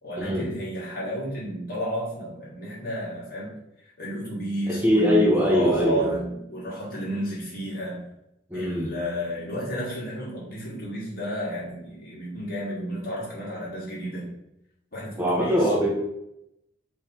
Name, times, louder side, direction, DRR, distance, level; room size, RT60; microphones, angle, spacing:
voice 1, 0.0-3.5 4.0-8.0 8.5-14.3 14.9-15.7, equal, 45° left, -6 dB, 1.7 m, -32 dB
voice 2, 4.7-6.1 8.5-8.9 15.2-15.9, equal, 10° right, -4 dB, 0.7 m, -22 dB
3.6 x 3.3 x 4.4 m, 0.83 s
head